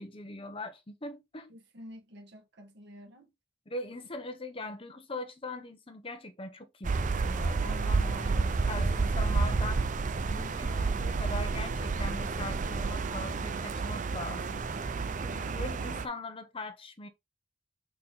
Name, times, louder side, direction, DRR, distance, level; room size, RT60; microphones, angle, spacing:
voice 1, 0.0-1.5 3.7-9.9 10.2-14.7 15.2-17.1, left 2 dB, 25° left, 1.0 m, -41 dB
voice 2, 1.5-3.3 8.0-8.9 10.1-10.3 15.3-15.8, left 1 dB, 55° right, 1.5 m, -50 dB
sound 1, 6.8-16.1, right 4 dB, 40° right, 0.5 m, -30 dB
5.7 x 4.2 x 4.0 m
head